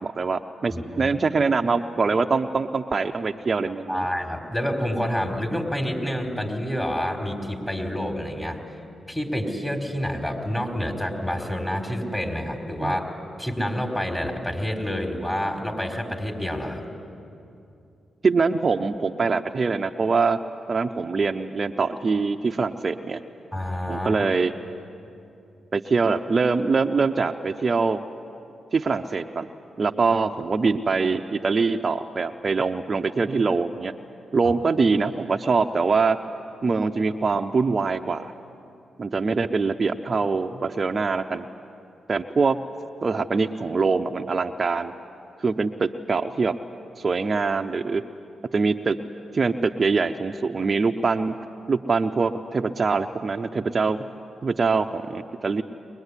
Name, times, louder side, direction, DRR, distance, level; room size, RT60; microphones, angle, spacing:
voice 1, 0.0-4.1 12.8-12.9 18.2-20.4 20.7-23.2 23.9-24.5 25.7-28.0 28.7-29.5 29.8-33.9 34.3-36.2 36.6-38.3 39.0-41.4 42.1-42.6 43.0-44.9 45.4-46.6 47.0-48.0 48.5-49.0 49.3-51.3 51.7-54.0 54.4-55.6, right 4 dB, 45° right, 7 dB, 0.8 m, -23 dB
voice 2, 0.7-1.1 3.9-8.6 9.1-16.9 23.5-24.2 34.4-34.5, equal, 10° left, 3 dB, 4.6 m, -28 dB
22.5 x 21.0 x 10.0 m, 2.6 s
supercardioid pair, 45°, 0 cm